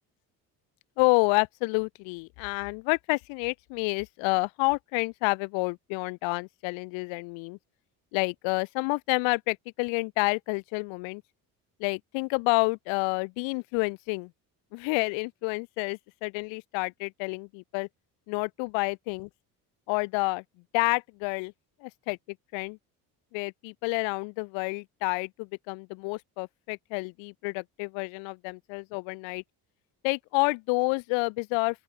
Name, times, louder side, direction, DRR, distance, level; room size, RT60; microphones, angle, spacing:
voice 1, 1.0-7.6 8.1-11.2 11.8-14.3 14.7-17.9 18.3-19.3 19.9-20.4 20.7-21.5 21.8-22.2 22.5-22.8 23.3-29.4 30.0-31.8, left 31 dB, 70° left, 0.7 m, -29 dB
open air
hypercardioid pair, 60°, 48 cm